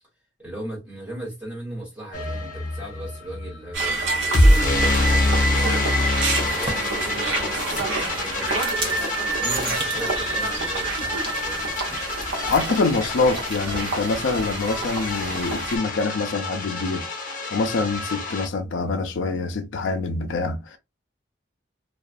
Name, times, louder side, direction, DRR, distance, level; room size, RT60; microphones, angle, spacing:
voice 1, 0.4-5.3 6.1-9.1 9.4-11.7, right 1 dB, 5° right, 1.3 m, -38 dB
sound 1, 2.1-18.5, left 1 dB, 40° left, 0.7 m, -26 dB
sound 2, 3.7-15.8, right 2 dB, 85° right, 0.8 m, -28 dB
sound 3, 4.7-14.4, right 1 dB, 25° right, 0.6 m, -39 dB
voice 2, 12.5-17.1 17.5-20.8, left 3 dB, 80° left, 0.4 m, -25 dB
2.3 x 2.3 x 2.5 m
head